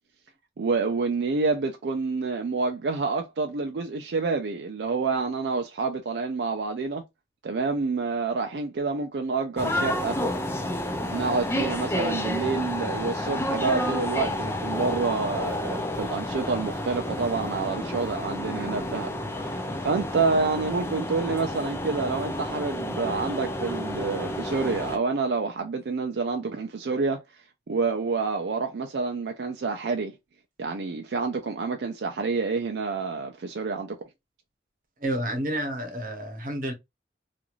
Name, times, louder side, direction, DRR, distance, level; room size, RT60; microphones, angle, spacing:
voice 1, 0.6-7.0 7.4-10.2 11.1-19.1 19.4-27.2 27.7-30.1 30.6-34.0, right 4 dB, 75° right, 0.4 m, -28 dB
sound 1, 9.6-25.0, left 1 dB, 15° left, 0.4 m, -30 dB
voice 2, 35.0-36.7, right 1 dB, 50° right, 0.9 m, -30 dB
3.0 x 2.5 x 2.3 m
head